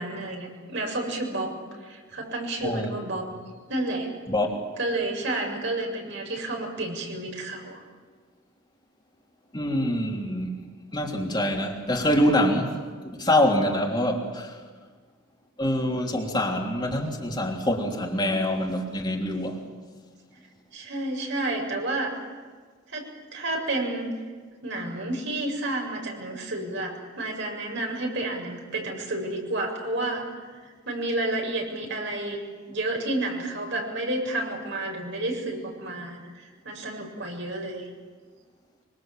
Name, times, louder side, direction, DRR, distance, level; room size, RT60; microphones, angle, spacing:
voice 1, 0.0-1.6 1.8-3.3 3.7-4.1 4.8-7.8 20.7-22.1 22.9-24.1 24.6-30.3 30.5-32.4 32.7-37.9, right 2 dB, 65° right, 1 dB, 7.0 m, -30 dB
voice 2, 2.6-2.9 4.3-4.5 9.5-10.6 10.9-12.8 13.2-14.6 15.6-19.6, left 1 dB, 20° left, 0 dB, 3.4 m, -25 dB
25.5 x 25.0 x 7.5 m, 1.5 s
head